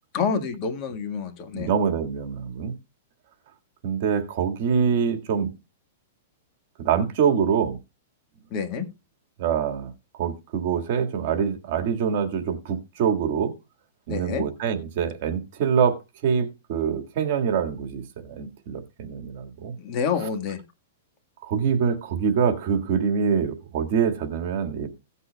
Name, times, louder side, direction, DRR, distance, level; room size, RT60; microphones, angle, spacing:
voice 1, 0.1-1.7 8.5-8.9 14.1-14.4 19.8-20.6, left 6 dB, 35° left, 1.7 m, -28 dB
voice 2, 1.5-2.7 3.8-5.5 6.8-7.8 9.4-9.9 10.2-13.5 14.1-19.7 21.4-24.9, right 7 dB, 50° right, 1.8 m, -25 dB
17.0 x 8.2 x 2.3 m
supercardioid pair, 155°, 0 cm